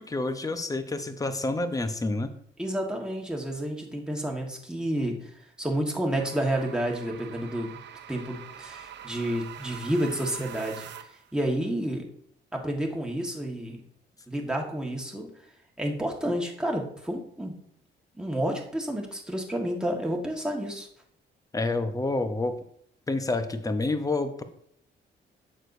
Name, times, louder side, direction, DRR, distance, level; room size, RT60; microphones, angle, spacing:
voice 1, 0.0-2.3 21.5-22.5 23.1-24.4, left 2 dB, 15° left, 9 dB, 0.8 m, -28 dB
voice 2, 2.6-5.3 5.6-7.7 8.1-10.9 11.3-12.0 12.5-13.8 14.3-15.3 15.8-17.5 18.2-20.9, right 1 dB, 5° right, 0 dB, 1.6 m, -30 dB
sound 1, 6.2-11.3, right 9 dB, 60° right, 0.6 m, -44 dB
9.0 x 6.6 x 2.7 m, 0.68 s
cardioid pair, 90°, 20 cm